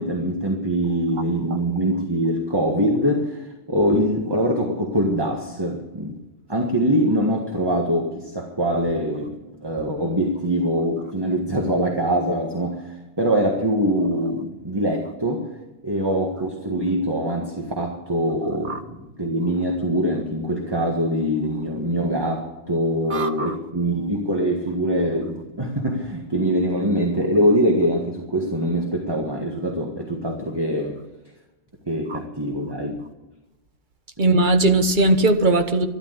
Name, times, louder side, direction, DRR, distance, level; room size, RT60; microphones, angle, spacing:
voice 1, 0.0-6.2 6.5-15.4 15.8-31.0 31.9-33.0, equal, 20° right, 1 dB, 1.7 m, -23 dB
voice 2, 23.1-23.5 32.1-32.2 34.2-35.9, right 2 dB, 40° right, 7 dB, 1.4 m, -19 dB
13.0 x 12.0 x 8.0 m, 1.0 s
omnidirectional pair, 1.3 m